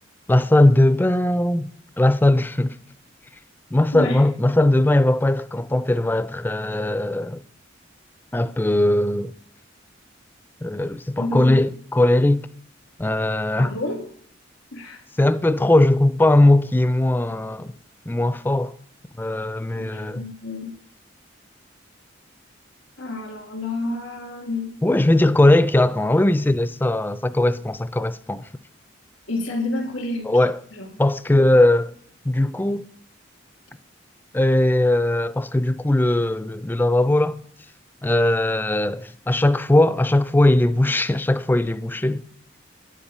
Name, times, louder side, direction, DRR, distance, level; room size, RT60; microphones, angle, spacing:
voice 1, 0.3-1.7 2.0-2.8 3.7-7.4 8.3-9.3 10.6-12.5 13.0-13.8 15.2-17.7 18.1-18.8 19.2-20.3 24.8-28.5 30.3-30.6 31.0-31.9 32.3-32.9 34.3-37.4 38.0-42.2, left 1 dB, 10° left, 0.3 m, -19 dB
voice 2, 3.9-4.2 11.2-11.6 13.6-14.1 14.7-15.0 19.7-20.7 23.0-24.8 29.3-30.3 30.7-30.9, left 2 dB, 90° left, 1.9 m, -29 dB
10.0 x 9.4 x 5.4 m
head